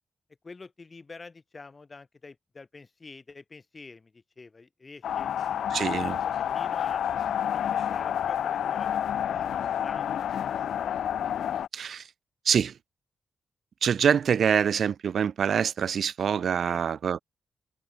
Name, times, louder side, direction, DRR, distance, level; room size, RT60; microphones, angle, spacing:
voice 1, 0.4-5.3 5.9-7.0 7.4-9.0 9.3-10.4 16.7-16.8, left 4 dB, 40° left, 7.6 m, -47 dB
sound 1, 5.0-11.7, left 9 dB, 85° left, 1.2 m, -29 dB
voice 2, 5.7-6.2 11.7-12.1 12.5-12.7 13.8-17.2, right 7 dB, 70° right, 0.5 m, -25 dB
cardioid pair, 60°, 0 cm